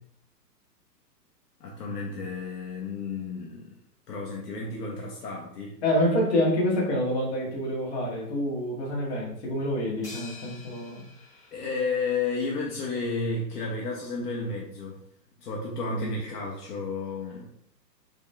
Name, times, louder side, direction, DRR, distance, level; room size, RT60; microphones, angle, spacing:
voice 1, 1.6-3.7 4.1-5.7 11.5-15.0 15.4-17.5, left 3 dB, 65° left, -2 dB, 1.2 m, -32 dB
voice 2, 5.8-11.0 15.9-16.1, left 1 dB, 40° left, -4 dB, 1.7 m, -27 dB
sound 1, 10.0-12.5, left 3 dB, 5° left, 1.2 m, -48 dB
4.1 x 3.6 x 3.4 m, 0.70 s
hypercardioid pair, 170°, 50 cm